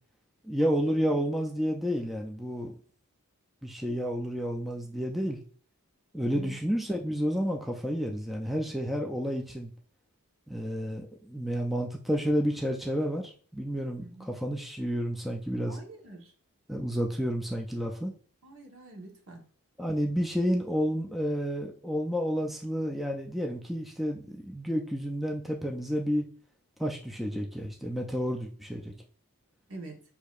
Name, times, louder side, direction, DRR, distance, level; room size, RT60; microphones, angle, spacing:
voice 1, 0.4-2.7 3.6-5.4 6.1-9.7 10.5-15.8 16.7-18.1 19.8-26.3 26.8-28.9, equal, ahead, 0 dB, 0.3 m, -30 dB
voice 2, 15.6-16.3 18.4-19.4 29.7-30.0, right 2 dB, 65° right, 1 dB, 1.1 m, -45 dB
6.2 x 2.7 x 2.4 m, 0.43 s
head